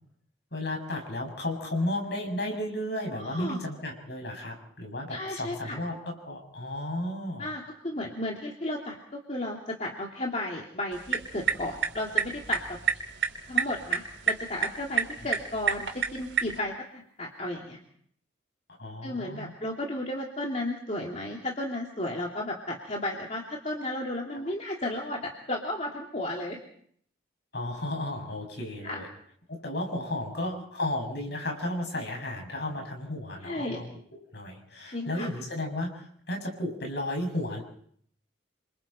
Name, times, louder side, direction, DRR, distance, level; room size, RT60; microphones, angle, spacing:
voice 1, 0.5-7.5 18.8-19.5 24.3-24.5 27.5-29.1 29.5-33.9 34.3-37.6, left 1 dB, 60° left, 3 dB, 7.0 m, -33 dB
voice 2, 3.1-3.6 5.1-5.8 7.4-12.8 13.5-17.8 19.0-26.6 28.8-29.0 33.4-33.8 34.9-35.3, left 1 dB, 35° left, -1 dB, 2.8 m, -34 dB
sound 1, 10.9-16.6, right 6 dB, 75° right, 3.6 m, -30 dB
28.5 x 25.5 x 4.4 m, 0.63 s
head